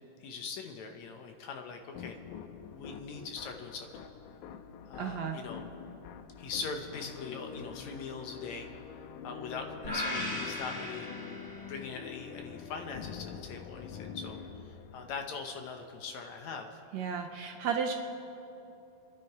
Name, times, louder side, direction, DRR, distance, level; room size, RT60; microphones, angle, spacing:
voice 1, 0.2-2.2 2.7-4.0 4.9-5.7 6.4-8.7 9.2-11.1 11.7-14.4 14.7-16.8, left 5 dB, 65° left, 4 dB, 2.1 m, -41 dB
sound 1, 1.9-15.6, left 7 dB, 85° left, 2.2 m, -46 dB
voice 2, 5.0-5.4 16.9-17.9, right 6 dB, 70° right, 4 dB, 1.8 m, -33 dB
sound 2, 9.8-12.1, left 1 dB, 15° left, 2.7 m, -37 dB
29.0 x 10.5 x 4.7 m, 2.9 s
omnidirectional pair, 3.8 m